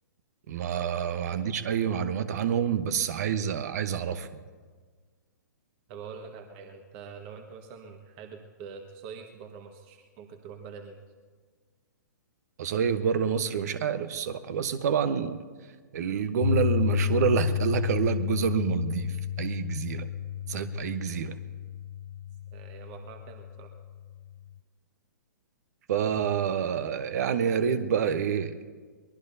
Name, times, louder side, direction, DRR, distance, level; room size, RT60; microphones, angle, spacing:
voice 1, 0.5-4.4 12.6-15.4 15.9-20.1 20.5-21.4 25.9-28.6, right 7 dB, 55° right, 11 dB, 1.0 m, -28 dB
voice 2, 5.9-11.0 21.1-21.2 22.5-23.7, right 6 dB, 35° right, 4 dB, 1.5 m, -45 dB
Piano, 16.4-24.5, left 11 dB, 60° left, 0.4 m, -31 dB
23.5 x 20.5 x 2.8 m, 1.5 s
figure-of-eight pair, 120°, 11 cm